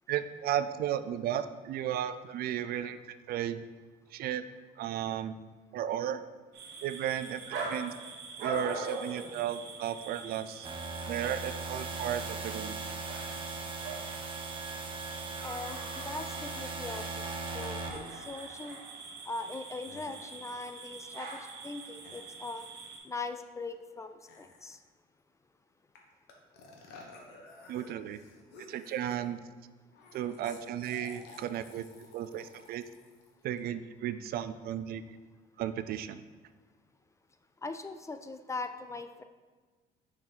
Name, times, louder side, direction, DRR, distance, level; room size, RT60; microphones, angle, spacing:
voice 1, 0.1-3.0 3.3-3.6 4.1-4.4 4.8-5.4 5.7-6.2 6.8-7.9 8.4-10.7 11.1-12.8 27.7-28.2 28.7-29.4 30.1-31.9 32.1-32.8 33.4-35.0 35.6-36.2, right 10 dB, 65° right, 11 dB, 0.4 m, -34 dB
sound 1, 6.5-23.0, right 4 dB, 80° right, 1.2 m, -43 dB
sound 2, 10.6-18.2, right 3 dB, 30° right, 0.8 m, -39 dB
voice 2, 15.4-17.1 17.5-18.8 19.3-22.6 23.0-24.8 37.6-39.2, left 3 dB, 15° left, 9 dB, 0.4 m, -40 dB
sound 3, 18.2-18.3 19.5-19.6 19.8-20.3 22.0-22.4 24.3-24.8 26.0-26.1 26.3-29.4 29.9-33.7, left 3 dB, 85° left, 1.1 m, -53 dB
6.3 x 4.0 x 4.4 m, 1.4 s
cardioid pair, 110°, 17 cm